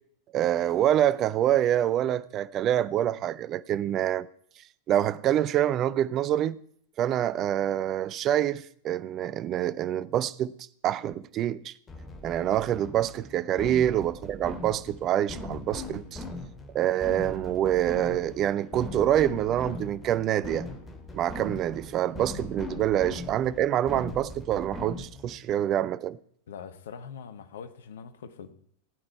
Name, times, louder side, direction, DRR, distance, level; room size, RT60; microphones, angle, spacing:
voice 1, 0.3-4.3 4.9-6.6 7.0-10.5 10.8-11.7 12.2-16.2 16.7-20.7 21.1-26.2, right 11 dB, 35° right, 0.5 m, -26 dB
sound 1, 11.9-25.4, left 2 dB, 20° left, 2.2 m, -40 dB
voice 2, 26.5-28.5, left 6 dB, 60° left, 1.1 m, -43 dB
15.5 x 8.9 x 4.6 m
figure-of-eight pair, 90°, 0 cm